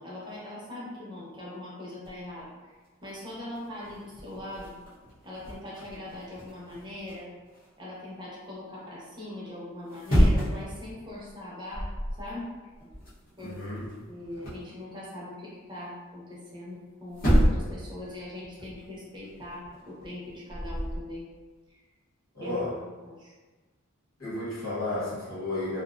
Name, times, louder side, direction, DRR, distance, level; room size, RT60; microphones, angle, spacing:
voice 1, 0.0-2.7 3.0-4.7 5.2-7.3 7.8-11.9 12.2-12.5 13.4-13.6 14.1-21.3 21.7-21.8 22.4-23.3, left 1 dB, 20° right, -7 dB, 0.6 m, -41 dB
sound 1, 2.0-2.4 3.0-3.1 3.4-7.7 9.8-10.8 11.1-11.4 11.7-12.3 12.5-14.7 16.7-16.8 17.1-17.9 18.1-21.0, equal, 45° left, 0.8 m, -29 dB
voice 2, 13.4-13.9 22.3-22.8 24.2-25.8, left 2 dB, 90° left, -8 dB, 1.1 m, -32 dB
2.5 x 2.1 x 2.4 m, 1.3 s
head